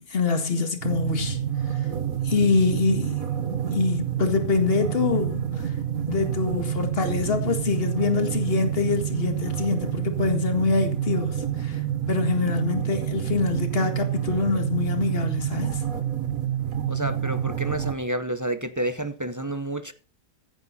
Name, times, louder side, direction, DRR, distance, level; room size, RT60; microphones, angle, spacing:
voice 1, 0.0-1.4 1.7-1.9 2.2-3.2 3.7-5.7 6.1-11.8 12.1-15.8, left 4 dB, 45° left, 2.1 m, -25 dB
sound 1, 0.8-18.0, right 10 dB, 90° right, 1.8 m, -28 dB
voice 2, 16.9-19.9, right 1 dB, 20° right, 0.6 m, -30 dB
15.5 x 9.6 x 4.2 m
omnidirectional pair, 1.4 m